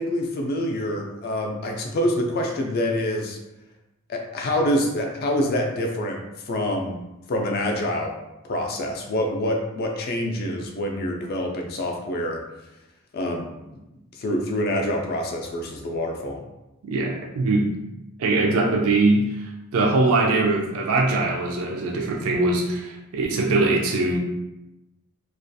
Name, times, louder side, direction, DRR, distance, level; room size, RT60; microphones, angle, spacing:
voice 1, 0.0-3.4 4.1-6.2 6.5-7.0 7.3-8.1 8.4-12.4 13.1-13.5 14.1-16.4, left 1 dB, 45° left, 2 dB, 0.4 m, -26 dB
voice 2, 16.9-17.8 18.2-24.2, right 2 dB, 75° right, 0 dB, 0.4 m, -22 dB
2.3 x 2.3 x 2.6 m, 0.95 s
head